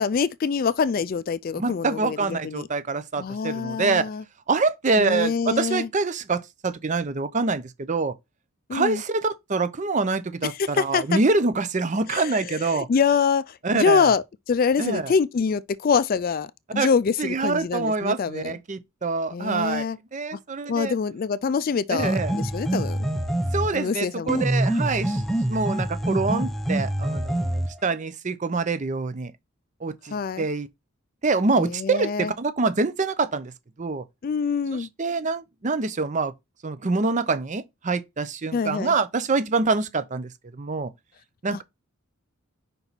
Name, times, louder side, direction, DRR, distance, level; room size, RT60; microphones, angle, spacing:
voice 1, 0.0-2.7 3.2-4.2 5.0-5.9 8.7-9.0 10.6-11.2 12.1-18.5 19.3-20.0 20.3-20.4 20.7-23.0 23.7-24.4 30.1-30.5 31.6-32.3 34.2-34.9 38.5-38.9 41.5-41.6, left 5 dB, 40° left, 0.3 m, -25 dB
voice 2, 1.6-4.0 4.5-8.1 8.7-12.9 13.6-14.1 14.8-15.1 16.8-16.9 17.2-20.9 21.9-22.3 23.5-25.2 25.5-29.3 29.8-30.7 31.2-33.5 33.8-34.0 34.7-36.3 36.6-40.9 41.4-41.6, right 3 dB, 35° right, 0.5 m, -25 dB
sound 1, 22.0-23.8 24.3-27.8, right 1 dB, ahead, 0.8 m, -25 dB
5.3 x 4.4 x 4.0 m
head